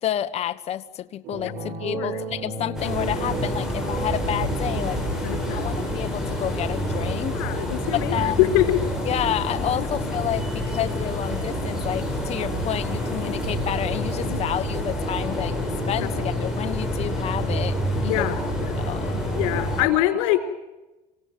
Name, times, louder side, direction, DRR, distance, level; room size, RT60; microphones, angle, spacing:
voice 1, 0.0-5.0 5.5-7.3 7.9-8.5 9.0-17.8 18.0-18.3 18.8-19.2, left 11 dB, 40° left, 10 dB, 1.3 m, -29 dB
sound 1, 1.2-5.8, right 3 dB, 55° right, 6.0 m, -33 dB
sound 2, 2.8-19.8, equal, 5° right, 7.3 m, -27 dB
voice 2, 5.2-5.7 7.4-8.8 9.8-9.9 14.3-14.4 18.0-18.7 19.4-20.4, left 14 dB, 85° left, 7 dB, 4.1 m, -24 dB
27.0 x 17.0 x 9.3 m, 1.1 s
cardioid pair, 140°, 17 cm